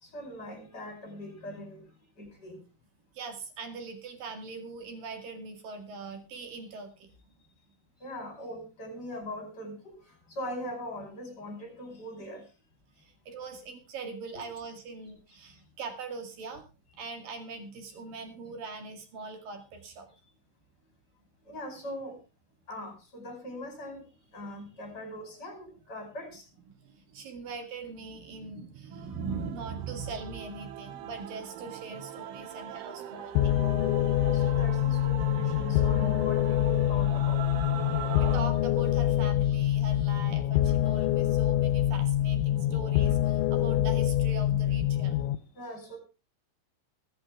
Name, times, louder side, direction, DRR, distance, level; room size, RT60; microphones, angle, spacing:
voice 1, 0.0-1.9 2.2-2.6 8.0-9.9 10.3-12.4 14.4-14.5 21.5-22.2 22.7-24.0 24.3-26.4 32.5-32.6 33.2-33.3 34.1-37.7 38.1-38.2 45.5-46.0, left 1 dB, 20° left, 5 dB, 5.2 m, -41 dB
voice 2, 3.1-7.1 13.0-16.7 17.0-20.1 26.7-33.5 38.2-45.2, right 4 dB, 55° right, 6 dB, 3.5 m, -41 dB
Male singing / Female singing / Musical instrument, 28.9-38.4, right 12 dB, 85° right, 3.6 m, -41 dB
sound 1, 33.4-45.4, left 12 dB, 80° left, 3.0 m, -25 dB
22.5 x 8.7 x 3.5 m, 0.32 s
omnidirectional pair, 5.3 m